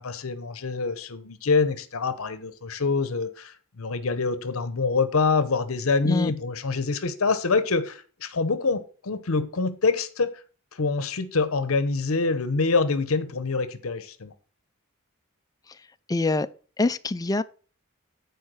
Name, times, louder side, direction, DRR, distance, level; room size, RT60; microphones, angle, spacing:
voice 1, 0.0-10.3 10.7-14.3, left 4 dB, 70° left, 0.8 m, -25 dB
voice 2, 16.1-16.5 16.8-17.4, left 2 dB, 15° left, 0.3 m, -24 dB
9.5 x 4.6 x 6.1 m
head